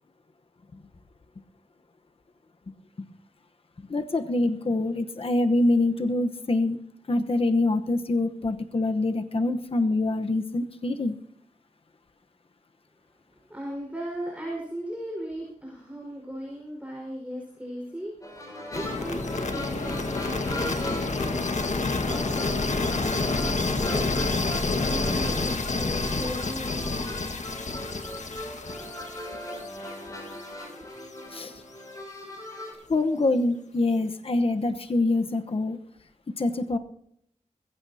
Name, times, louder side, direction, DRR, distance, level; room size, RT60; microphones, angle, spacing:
voice 1, 3.9-6.8 7.1-11.1 31.3-31.6 32.9-35.8 36.4-36.8, left 2 dB, 50° left, 7 dB, 1.0 m, -25 dB
voice 2, 13.3-27.3, equal, 10° right, -2 dB, 5.0 m, -38 dB
sound 1, 18.2-32.7, left 1 dB, 25° left, 6.7 m, -38 dB
sound 2, 18.7-30.6, left 3 dB, 70° left, 1.7 m, -29 dB
21.0 x 15.5 x 2.8 m, 0.70 s
wide cardioid pair, 75°, 13 cm